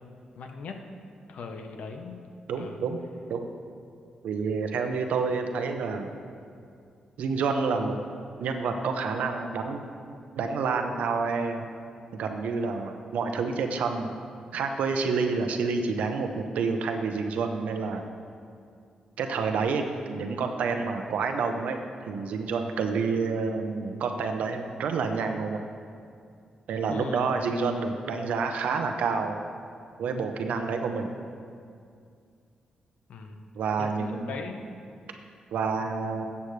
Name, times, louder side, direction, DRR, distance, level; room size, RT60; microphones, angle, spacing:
voice 1, 0.4-0.9 1.3-2.2 2.6-2.8 26.9-27.5 33.1-33.4 33.8-34.8, left 4 dB, 75° left, 4 dB, 1.0 m, -39 dB
voice 2, 2.5-3.0 3.3-3.5 4.2-6.1 7.2-8.0 8.4-9.8 10.3-11.7 12.1-14.1 14.5-18.1 19.2-19.8 20.1-21.8 22.1-25.6 26.7-29.4 30.0-31.1 33.5-34.3 35.5-36.2, right 4 dB, 85° right, 5 dB, 0.8 m, -28 dB
14.5 x 8.3 x 3.3 m, 2.3 s
cardioid pair, 90°, 2 cm